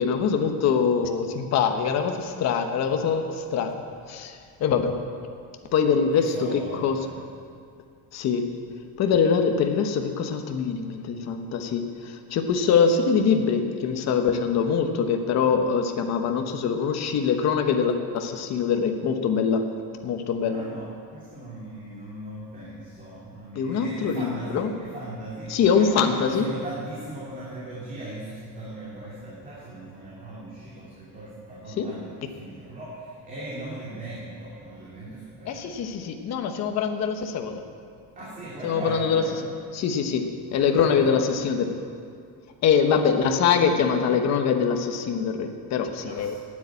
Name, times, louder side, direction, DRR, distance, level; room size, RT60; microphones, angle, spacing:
voice 1, 0.0-3.8 4.1-5.0 5.7-7.0 8.1-8.5 9.0-19.7 20.0-20.6 23.5-24.7 25.5-26.4 31.8-31.9 35.5-37.6 38.6-39.2 39.7-41.8 42.6-46.4, left 6 dB, 45° left, 5 dB, 1.1 m, -24 dB
voice 2, 6.1-7.2 20.4-36.0 38.2-39.5 40.5-41.2 46.1-46.4, right 1 dB, 20° right, -7 dB, 2.6 m, -38 dB
12.0 x 9.7 x 8.5 m, 2.2 s
cardioid pair, 175°, 39 cm